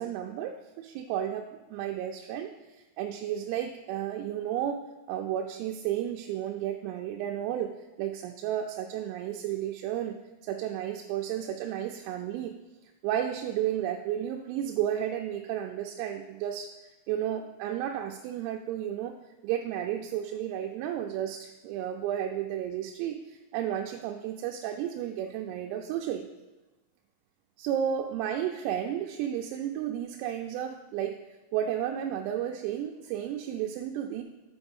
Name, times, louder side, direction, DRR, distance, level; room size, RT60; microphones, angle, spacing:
voice 1, 0.0-1.4 1.7-2.5 3.0-4.8 5.1-7.7 8.0-10.2 10.4-12.5 13.0-16.7 17.1-19.1 19.4-26.3 27.6-31.2 31.5-34.2, right 10 dB, 85° right, 3 dB, 3.2 m, -32 dB
7.8 x 4.3 x 5.3 m, 1.1 s
omnidirectional pair, 5.9 m